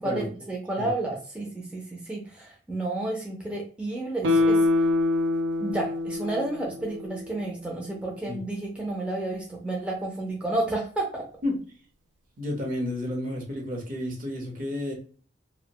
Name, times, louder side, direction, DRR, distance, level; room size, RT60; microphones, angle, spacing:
voice 1, 0.0-4.6 5.6-11.2, right 2 dB, 5° right, -2 dB, 0.4 m, -31 dB
Guitar, 4.2-7.5 7.9-8.0, left 2 dB, 85° right, 0.4 m, -25 dB
voice 2, 12.4-14.9, left 1 dB, 50° right, 0 dB, 0.8 m, -31 dB
2.5 x 2.1 x 2.8 m, 0.41 s
head